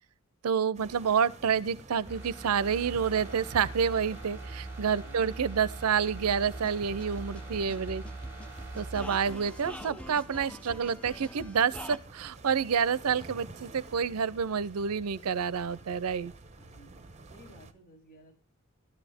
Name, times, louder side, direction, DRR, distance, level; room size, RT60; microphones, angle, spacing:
voice 1, 0.4-8.0 8.8-16.3, right 7 dB, 85° right, 0.5 m, -28 dB
sound 1, 0.7-17.7, right 3 dB, 30° right, 1.2 m, -50 dB
sound 2, 2.1-10.7 11.1-11.2, right 2 dB, 10° right, 4.6 m, -43 dB
voice 2, 5.0-5.4 16.6-18.3, right 1 dB, 45° left, 6.9 m, -56 dB
sound 3, 6.1-12.0, left 1 dB, 5° left, 0.8 m, -45 dB
13.5 x 12.0 x 3.5 m
head